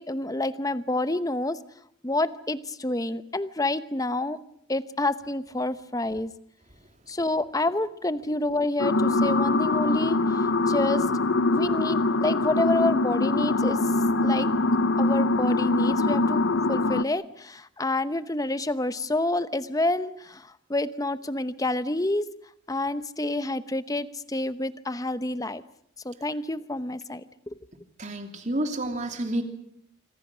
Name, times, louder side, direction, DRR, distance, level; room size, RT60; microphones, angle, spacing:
voice 1, 0.0-1.6 2.0-4.4 4.7-6.3 7.1-10.2 10.7-11.0 11.5-13.8 14.2-14.5 15.0-16.4 16.7-22.2 22.7-25.6 26.0-27.6, left 2 dB, 15° left, 13 dB, 0.9 m, -28 dB
sound 1, 8.8-17.0, left 2 dB, 70° left, 0.9 m, -23 dB
voice 2, 28.0-29.4, right 1 dB, 35° right, 6 dB, 3.0 m, -29 dB
27.0 x 25.0 x 6.2 m, 0.68 s
head